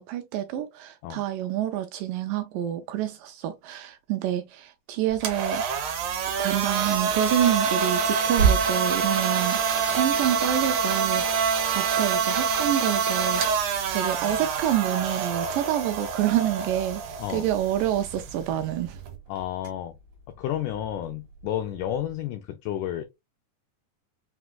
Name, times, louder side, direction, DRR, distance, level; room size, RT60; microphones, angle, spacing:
voice 1, 0.0-5.6 6.4-13.4 13.9-19.0, right 12 dB, 80° right, 2.0 m, -28 dB
sound 1, 5.1-19.2, right 6 dB, 65° right, 2.2 m, -26 dB
sound 2, 8.3-12.0 12.5-22.3, right 6 dB, 45° right, 2.3 m, -35 dB
voice 2, 19.3-20.0 20.4-23.0, left 11 dB, 90° left, 1.8 m, -31 dB
5.9 x 3.1 x 2.2 m
omnidirectional pair, 4.2 m